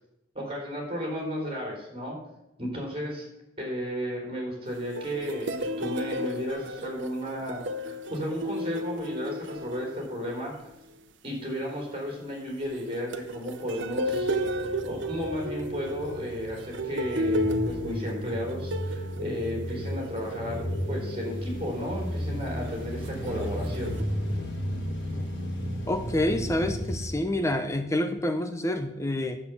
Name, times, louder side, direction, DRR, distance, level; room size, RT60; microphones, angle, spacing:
voice 1, 0.3-2.2 2.6-3.3 3.6-10.5 11.2-14.3 14.9-23.9, equal, 30° right, -1 dB, 3.9 m, -33 dB
sound 1, 4.7-10.5 12.4-20.6 21.3-21.5 22.7-24.0, equal, 85° right, 0.9 m, -33 dB
sound 2, 13.8-28.0, equal, 80° left, 4.7 m, -34 dB
voice 2, 25.9-29.4, left 1 dB, 15° left, 7 dB, 0.7 m, -27 dB
10.0 x 7.6 x 7.0 m, 0.91 s
head